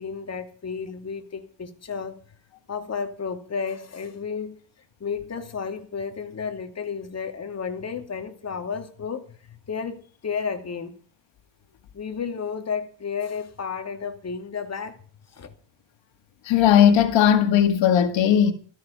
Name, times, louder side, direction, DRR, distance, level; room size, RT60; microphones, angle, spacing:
voice 1, 0.0-2.2 2.7-4.6 5.0-11.0 11.9-15.0 15.4-15.5, left 6 dB, 35° left, 2.6 m, -32 dB
voice 2, 16.5-18.5, left 9 dB, 80° left, 2.1 m, -17 dB
16.0 x 14.0 x 5.7 m
cardioid pair, 95°, 44 cm